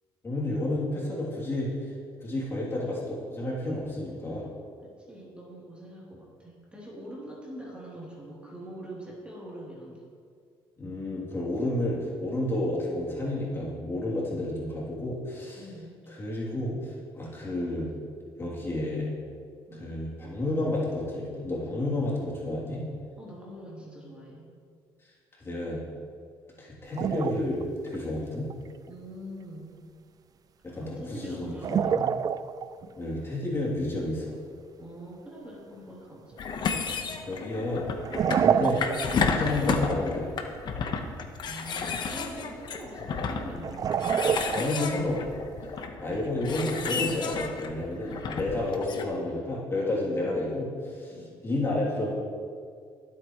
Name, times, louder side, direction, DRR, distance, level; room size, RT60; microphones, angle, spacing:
voice 1, 0.2-1.7 2.2-4.5 10.8-15.6 16.1-17.9 18.4-19.1 19.8-22.8 25.4-25.8 26.6-28.5 30.6-32.0 32.9-34.4 37.3-37.9 38.4-38.8 39.1-40.3 44.5-45.2 46.0-51.1 51.4-52.1, left 1 dB, 25° left, -6 dB, 3.1 m, -31 dB
voice 2, 4.8-10.0 14.3-14.8 15.6-16.1 19.7-20.0 23.2-24.6 28.9-29.8 30.7-32.1 34.8-36.4 41.4-44.0 44.7-45.7 48.0-48.4 51.1-51.3, right 1 dB, 10° right, -5 dB, 3.2 m, -44 dB
sound 1, 27.0-27.6 27.9-28.0 28.5-28.6 31.5-32.9 36.3-36.4 37.9-39.4 39.7-39.8 43.6-45.1, right 7 dB, 40° right, 0.4 m, -27 dB
sound 2, 36.4-49.0, left 5 dB, 50° left, 1.2 m, -32 dB
21.0 x 8.5 x 3.2 m, 2.2 s
cardioid pair, 115°, 10 cm